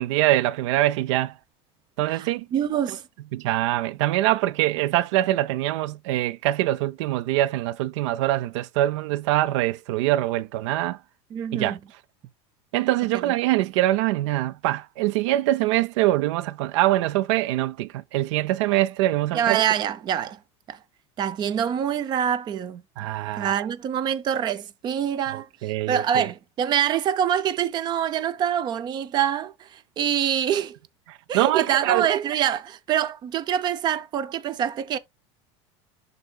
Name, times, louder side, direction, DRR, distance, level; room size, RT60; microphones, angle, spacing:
voice 1, 0.0-1.3 2.0-2.5 3.3-11.0 11.5-11.8 12.7-19.6 23.0-23.5 25.3-26.3 31.3-32.1, right 15 dB, 80° right, 0.5 m, -23 dB
voice 2, 2.1-3.0 11.3-11.8 13.2-13.3 19.3-20.4 20.7-20.8 21.2-22.8 23.4-25.5 25.9-30.8 31.3-35.0, right 9 dB, 30° right, 0.6 m, -25 dB
11.0 x 4.0 x 2.3 m
supercardioid pair, 160°, 15 cm